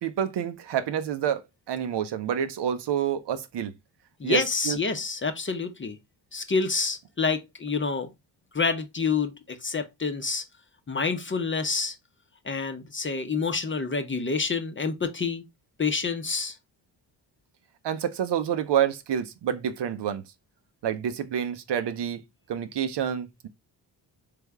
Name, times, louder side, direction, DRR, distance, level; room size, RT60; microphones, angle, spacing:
voice 1, 0.0-3.7 4.2-4.4 4.6-4.8 17.8-20.2 20.8-22.2 22.5-23.5, right 9 dB, 60° right, 0.7 m, -28 dB
voice 2, 4.2-6.0 6.3-8.1 8.5-10.4 10.9-11.9 12.4-15.4 15.8-16.6, left 4 dB, 25° left, 0.7 m, -28 dB
3.4 x 3.3 x 3.4 m
supercardioid pair, 60°, 48 cm